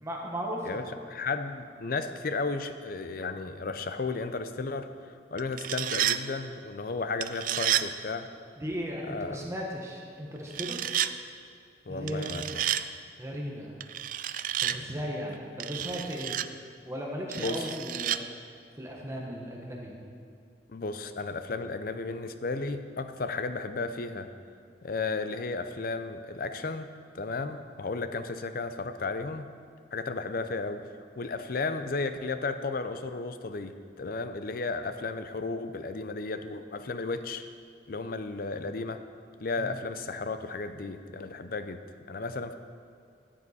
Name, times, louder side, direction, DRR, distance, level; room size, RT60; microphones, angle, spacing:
voice 1, 0.0-1.0 8.6-10.9 11.9-12.4 13.2-13.7 14.6-16.4 16.8-18.2 18.7-20.0 39.6-39.8, equal, 15° right, -1 dB, 1.1 m, -36 dB
voice 2, 0.6-8.3 9.1-9.4 11.9-12.6 17.3-17.7 20.7-24.3 24.8-26.9 27.1-29.5 29.9-30.8 31.2-37.4 37.9-39.0 39.4-41.8 42.1-42.5, left 3 dB, 55° left, 9 dB, 0.6 m, -34 dB
sound 1, 5.4-6.2 7.2-7.9 10.5-11.1 12.1-12.8 13.8-14.8 15.6-16.5 17.3-18.2, right 11 dB, 50° right, 0.3 m, -30 dB
13.5 x 7.4 x 4.2 m, 2.4 s
head